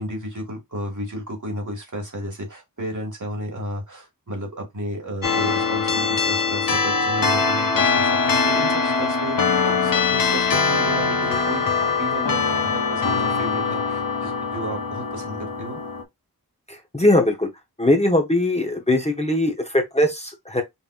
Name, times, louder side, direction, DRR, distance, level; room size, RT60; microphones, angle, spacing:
voice 1, 0.0-15.8, equal, 55° right, 2.2 m, -33 dB
sound 1, 5.2-16.0, left 4 dB, 65° left, 0.9 m, -22 dB
voice 2, 16.7-17.5 17.8-20.6, left 1 dB, 15° left, 1.0 m, -20 dB
5.5 x 2.9 x 2.4 m
wide cardioid pair, 55°, 37 cm